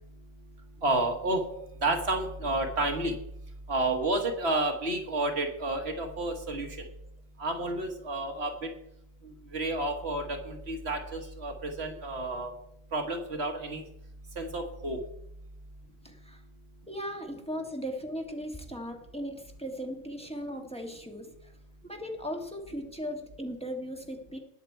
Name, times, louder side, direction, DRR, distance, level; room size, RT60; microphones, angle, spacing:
voice 1, 0.8-1.4 1.8-3.2 3.7-6.7 7.4-8.5 9.5-12.5 12.9-13.8 14.4-15.0, right 2 dB, 55° right, 4 dB, 1.7 m, -30 dB
voice 2, 16.0-16.4 16.9-21.5 21.8-24.4, equal, 5° left, 2 dB, 1.6 m, -37 dB
19.5 x 6.7 x 4.5 m, 0.80 s
omnidirectional pair, 1.3 m